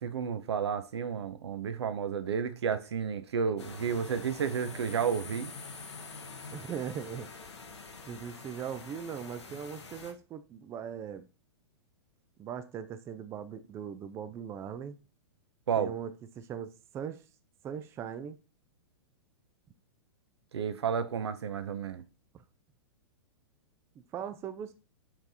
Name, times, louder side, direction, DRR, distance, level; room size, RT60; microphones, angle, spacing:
voice 1, 0.0-5.5 15.7-15.9 20.5-22.0, right 7 dB, 70° right, 0.6 m, -31 dB
sound 1, 3.6-10.1, left 4 dB, 80° left, 0.9 m, -46 dB
voice 2, 6.5-7.3 8.1-11.3 12.4-15.0 15.8-17.2 17.6-18.4 24.1-24.7, right 8 dB, 20° right, 0.3 m, -39 dB
5.9 x 3.3 x 2.7 m
figure-of-eight pair, 105°, 14 cm